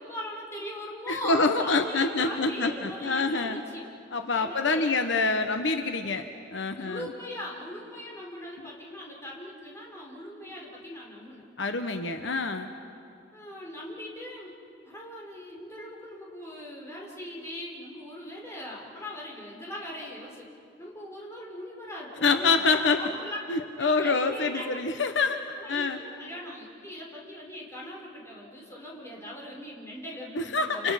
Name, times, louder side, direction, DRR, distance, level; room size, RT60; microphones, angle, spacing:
voice 1, 0.0-3.9 4.3-5.0 6.8-11.4 13.3-14.5 14.8-20.4 20.8-22.6 23.0-23.4 23.7-25.1 25.6-30.9, left 1 dB, 15° left, -3 dB, 5.1 m, -40 dB
voice 2, 1.1-3.6 4.1-7.1 11.6-12.7 22.2-23.1 23.5-25.4 25.7-26.0 30.3-30.9, left 3 dB, 70° left, 7 dB, 1.1 m, -26 dB
30.0 x 29.5 x 5.8 m, 2.5 s
head